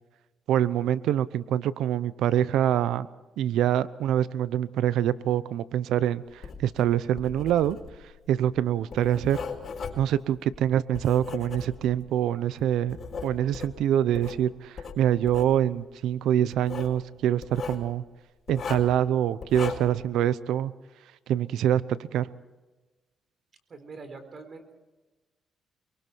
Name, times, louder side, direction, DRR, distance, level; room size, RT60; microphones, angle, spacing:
voice 1, 0.5-3.1 3.4-6.2 6.6-7.8 8.3-9.4 10.0-13.0 13.2-18.0 18.5-20.7 21.3-22.3, right 11 dB, 85° right, 17 dB, 0.7 m, -25 dB
Writing, 6.3-12.1 12.6-14.4 14.8-15.5 16.5-17.0 17.4-17.8 18.5-19.0 19.4-20.0, left 5 dB, 50° left, 4.6 m, -38 dB
voice 2, 23.7-24.7, right 4 dB, 45° right, 9 dB, 4.0 m, -43 dB
24.5 x 23.0 x 4.6 m, 1.2 s
cardioid pair, 90°, 0 cm